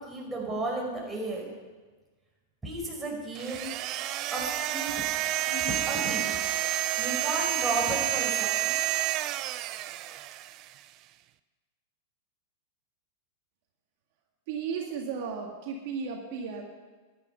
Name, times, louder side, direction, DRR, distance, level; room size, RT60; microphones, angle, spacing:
voice 1, 0.0-1.4 2.6-3.7 4.3-4.9 5.4-6.4 7.0-8.7, right 2 dB, 10° right, -3 dB, 4.9 m, -33 dB
sound 1, 3.3-10.7, right 14 dB, 40° right, 0.5 m, -30 dB
voice 2, 14.5-16.6, right 6 dB, 60° right, 0 dB, 1.9 m, -34 dB
13.5 x 10.5 x 5.7 m, 1.3 s
hypercardioid pair, 125°, 0 cm